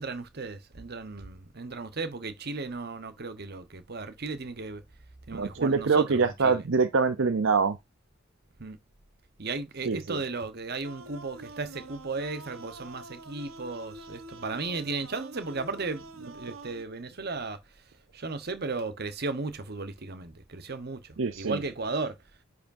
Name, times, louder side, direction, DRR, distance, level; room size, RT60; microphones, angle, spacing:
voice 1, 0.0-4.8 5.3-6.6 8.6-8.8 9.4-17.6 18.1-22.2, right 3 dB, 50° right, 1.0 m, -35 dB
voice 2, 5.3-7.8 9.8-10.2 21.2-21.6, right 4 dB, 65° right, 0.6 m, -25 dB
sound 1, 10.8-16.8, right 2 dB, 80° right, 1.1 m, -46 dB
10.0 x 5.0 x 2.6 m
head